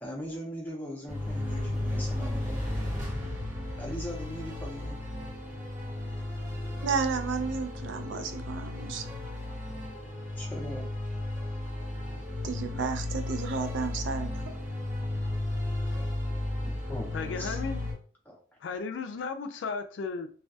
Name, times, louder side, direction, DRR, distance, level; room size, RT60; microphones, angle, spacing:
voice 1, 0.0-2.5 3.8-5.0 10.4-10.9 12.7-12.9 15.8-16.0 16.6-17.1 17.4-17.6 18.3-18.4, equal, 10° left, 0.6 m, -40 dB
sound 1, 1.1-17.9, left 1 dB, 40° right, 0.9 m, -34 dB
voice 2, 6.8-9.1 12.4-14.3, right 5 dB, 75° right, 0.4 m, -32 dB
voice 3, 17.1-17.9 18.6-20.3, left 4 dB, 80° left, 0.4 m, -35 dB
2.3 x 2.2 x 2.6 m
head